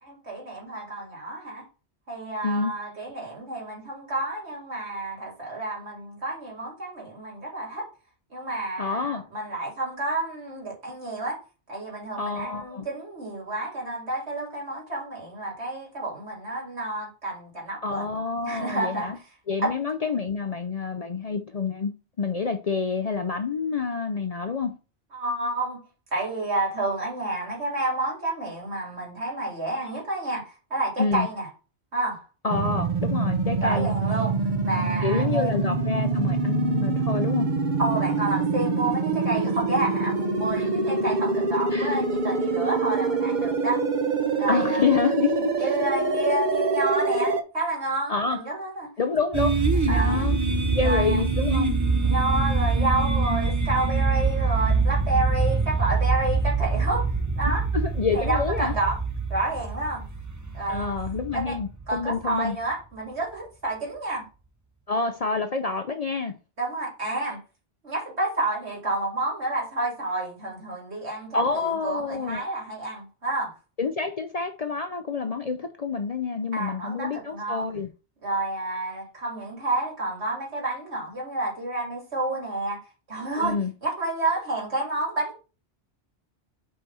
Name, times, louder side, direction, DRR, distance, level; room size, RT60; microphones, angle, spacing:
voice 1, 0.0-1.6 2.1-7.9 8.3-11.4 11.7-18.0 18.4-19.2 19.6-19.7 25.1-25.8 26.1-31.5 31.9-32.2 33.6-34.4 34.6-35.7 37.8-43.8 44.3-44.9 45.6-48.9 49.9-50.3 50.8-51.2 52.0-57.1 57.4-57.6 58.1-59.0 59.3-60.1 60.5-60.9 61.3-61.6 61.9-64.2 66.6-67.4 67.8-73.5 76.5-77.7 78.2-82.8 83.1-83.5 83.8-85.4, right 2 dB, 75° right, 3.1 m, -29 dB
voice 2, 8.8-9.2 12.2-12.9 17.8-19.2 19.5-24.7 31.0-31.3 32.4-33.9 35.0-37.5 40.6-40.7 41.7-42.0 44.5-45.7 48.1-48.4 49.0-49.6 49.8-50.4 50.8-51.8 57.5-57.6 57.8-58.7 60.7-62.6 64.9-66.3 71.3-72.4 73.8-77.9 83.4-83.7, left 5 dB, 45° left, 0.5 m, -27 dB
sound 1, 32.5-47.4, right 4 dB, 45° right, 0.9 m, -25 dB
sound 2, 49.3-62.2, right 4 dB, 20° right, 0.5 m, -24 dB
5.6 x 4.2 x 5.5 m
omnidirectional pair, 1.1 m